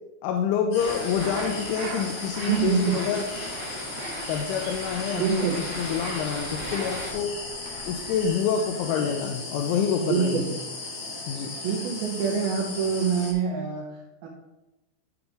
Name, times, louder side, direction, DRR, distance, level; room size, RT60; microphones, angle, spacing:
voice 1, 0.2-3.2 4.3-7.3 7.8-10.5 11.3-11.5, left 7 dB, 85° left, 3 dB, 3.0 m, -27 dB
sound 1, 0.7-13.3, left 3 dB, 55° left, 2.2 m, -37 dB
sound 2, 0.7-8.8, right 3 dB, 70° right, 3.8 m, -41 dB
sound 3, 0.8-7.1, equal, 25° left, 2.0 m, -38 dB
voice 2, 2.5-3.0 5.1-5.6 10.0-10.5 11.6-14.3, right 6 dB, 85° right, -1 dB, 2.1 m, -25 dB
13.0 x 5.2 x 3.5 m, 1.0 s
omnidirectional pair, 5.6 m